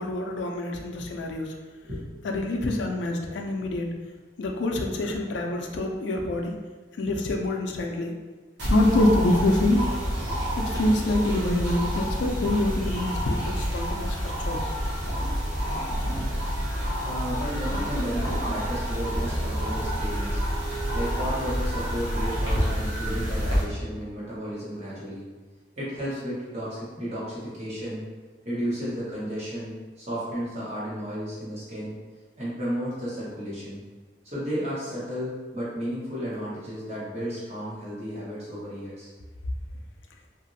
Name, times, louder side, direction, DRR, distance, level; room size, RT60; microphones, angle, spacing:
voice 1, 0.0-1.5 2.2-3.9 4.4-6.6 7.0-8.1 8.6-9.8 10.6-14.2 14.5-14.7, left 1 dB, 85° left, 2 dB, 0.4 m, -26 dB
sound 1, 8.6-23.6, equal, 85° right, 1.0 m, -28 dB
voice 2, 17.0-20.4 20.9-25.2 25.8-28.0 28.4-31.9 32.4-33.8 34.2-39.1, equal, 35° right, -8 dB, 1.0 m, -33 dB
2.9 x 2.5 x 2.6 m, 1.3 s
head